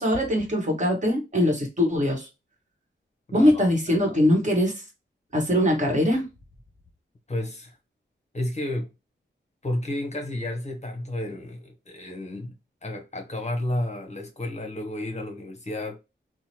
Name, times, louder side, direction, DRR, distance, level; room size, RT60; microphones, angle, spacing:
voice 1, 0.0-2.3 3.3-4.7 5.3-6.3, left 1 dB, 40° right, 1.2 m, -22 dB
voice 2, 3.3-4.3 7.3-7.8 8.3-8.9 9.6-12.5 12.8-16.0, left 1 dB, 35° left, 0.8 m, -32 dB
2.8 x 2.1 x 2.9 m
wide cardioid pair, 95°, 20 cm